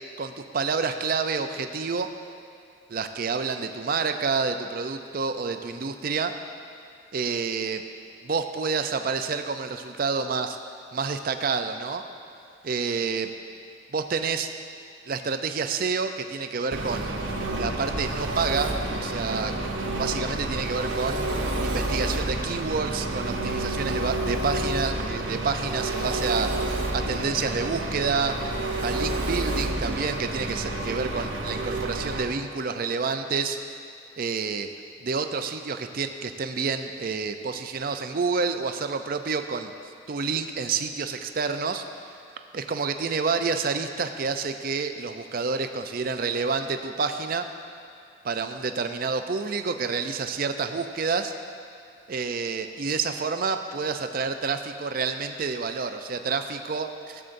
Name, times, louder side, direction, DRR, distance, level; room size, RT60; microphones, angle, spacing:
voice 1, 0.2-2.1 2.9-6.3 7.1-7.8 8.2-10.6 10.9-12.0 12.6-13.3 13.9-14.5 15.1-17.3 17.6-19.5 20.0-21.2 21.6-26.5 26.9-28.4 28.8-33.6 34.2-34.7 35.0-39.7 40.1-41.8 42.5-47.4 48.2-51.3 52.1-57.2, right 5 dB, 45° right, 7 dB, 0.5 m, -28 dB
Engine, 16.7-32.3, right 1 dB, 75° right, 0.9 m, -29 dB
16.0 x 7.7 x 2.6 m, 2.5 s
head